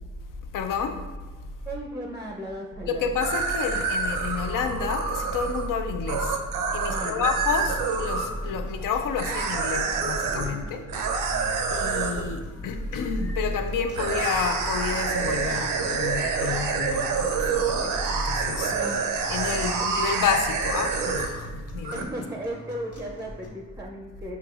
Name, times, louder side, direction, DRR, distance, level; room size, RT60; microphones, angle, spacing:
voice 1, 0.5-1.0 2.9-6.4 6.7-10.8 11.2-11.4 11.7-18.7 19.3-22.0, left 5 dB, 70° left, 7 dB, 0.5 m, -29 dB
voice 2, 1.7-3.0 6.9-7.3 10.5-10.8 18.6-19.0 21.9-24.4, right 1 dB, 10° right, 0 dB, 0.5 m, -36 dB
sound 1, 3.2-8.3 9.2-10.5 10.9-12.2 13.9-21.5 21.8-22.0, right 5 dB, 80° right, 0.6 m, -27 dB
sound 2, 7.5-23.5, left 1 dB, 45° left, 1.2 m, -46 dB
5.8 x 2.9 x 2.4 m, 1.3 s
cardioid pair, 65°, 33 cm